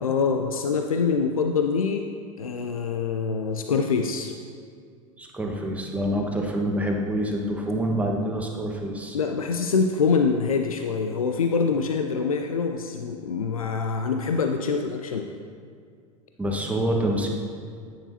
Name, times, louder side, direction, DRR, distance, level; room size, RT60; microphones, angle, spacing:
voice 1, 0.0-2.1 2.4-4.3 9.1-15.3, left 5 dB, 80° left, 5 dB, 0.5 m, -25 dB
voice 2, 5.2-9.2 16.4-17.3, right 1 dB, 10° right, 0 dB, 1.3 m, -26 dB
10.5 x 9.3 x 2.8 m, 2.2 s
figure-of-eight pair, 85°, 18 cm